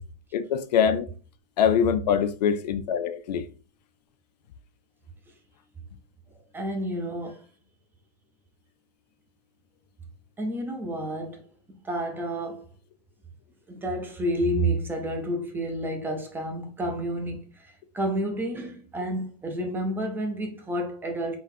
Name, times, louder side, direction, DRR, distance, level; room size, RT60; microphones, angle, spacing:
voice 1, 0.3-1.1 1.6-3.5, left 8 dB, 80° left, 0.5 m, -23 dB
voice 2, 6.5-7.4 10.4-11.4 11.7-12.6 13.7-21.4, right 1 dB, 10° right, 0.6 m, -30 dB
3.9 x 2.4 x 4.3 m
supercardioid pair, 145°, 21 cm